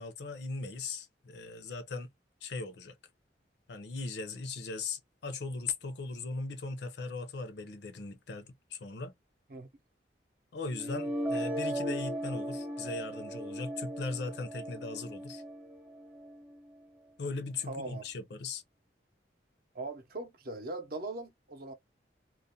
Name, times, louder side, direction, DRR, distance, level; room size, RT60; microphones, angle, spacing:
voice 1, 0.0-2.1 2.4-3.0 3.7-9.1 10.5-15.4 17.2-18.6, left 3 dB, 70° left, 0.5 m, -39 dB
sound 1, 10.7-16.7, right 1 dB, 10° right, 0.6 m, -37 dB
voice 2, 17.7-18.0 19.7-21.7, right 2 dB, 55° right, 0.6 m, -40 dB
2.4 x 2.1 x 2.5 m
head